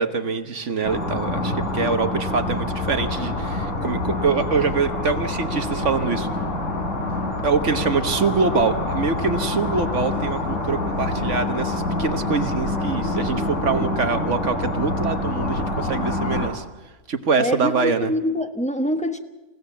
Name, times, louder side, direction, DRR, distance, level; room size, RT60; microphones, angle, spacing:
voice 1, 0.0-6.3 7.4-16.6 17.1-18.1, right 4 dB, 55° right, 9 dB, 1.4 m, -24 dB
sound 1, 0.8-16.5, left 2 dB, 50° left, 4.1 m, -26 dB
voice 2, 17.4-19.2, left 1 dB, 5° left, 6 dB, 1.2 m, -25 dB
28.5 x 16.5 x 7.2 m, 1.1 s
omnidirectional pair, 1.6 m